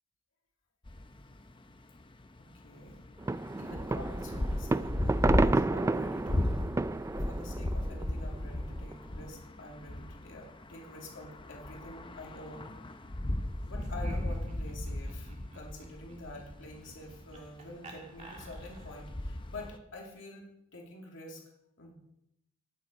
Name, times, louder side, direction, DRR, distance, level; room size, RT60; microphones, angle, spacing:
sound 1, 0.9-17.6 17.9-19.8, left 1 dB, 25° left, 0.7 m, -36 dB
voice 1, 2.4-3.0 3.6-6.7 7.1-12.7 13.7-20.5 20.7-21.4 21.8-21.9, left 1 dB, 65° left, -1 dB, 2.6 m, -47 dB
sound 2, 3.2-8.5 8.9-9.0 9.2-9.3, right 2 dB, 15° right, 0.3 m, -31 dB
Laughter, 13.7-19.1, right 2 dB, 35° right, 1.9 m, -51 dB
12.5 x 9.6 x 4.4 m, 0.83 s
head